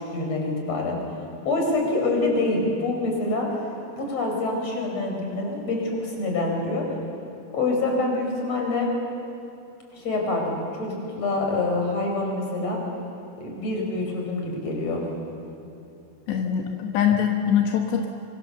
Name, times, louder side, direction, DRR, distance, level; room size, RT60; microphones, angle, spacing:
voice 1, 0.1-1.0 1.5-6.8 7.5-8.9 9.9-12.8 13.4-15.0, left 2 dB, 35° left, 1 dB, 5.5 m, -26 dB
voice 2, 16.3-18.1, left 8 dB, 80° left, 2 dB, 3.4 m, -23 dB
25.5 x 25.0 x 7.1 m, 2.7 s
omnidirectional pair, 5.0 m